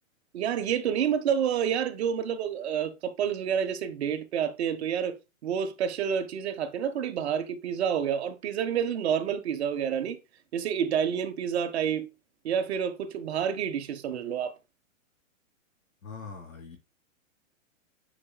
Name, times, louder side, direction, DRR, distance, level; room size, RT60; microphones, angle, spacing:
voice 1, 0.3-5.2 5.4-10.2 10.5-12.1 12.4-14.5, right 8 dB, 55° right, 1.1 m, -29 dB
voice 2, 16.0-16.8, left 5 dB, 80° left, 3.1 m, -42 dB
8.5 x 5.0 x 2.2 m
hypercardioid pair, 160°, 40 cm